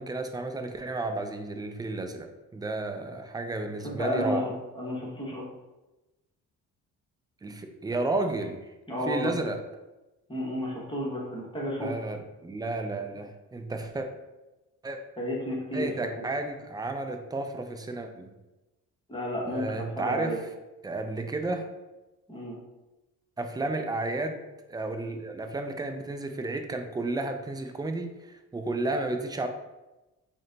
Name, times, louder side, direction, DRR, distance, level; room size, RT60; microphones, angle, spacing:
voice 1, 0.0-4.5 7.4-8.6 9.1-9.6 11.8-14.1 14.8-15.0 15.7-18.3 19.5-20.5 20.8-21.7 23.4-24.4 24.7-29.5, right 2 dB, 15° right, 5 dB, 0.3 m, -32 dB
voice 2, 3.8-4.4 4.7-5.4 8.9-9.3 10.3-12.0 15.2-15.9 19.1-20.4 22.3-22.6, left 1 dB, 15° left, -5 dB, 1.1 m, -32 dB
3.8 x 2.2 x 3.8 m, 1.0 s
cardioid pair, 100°, 32 cm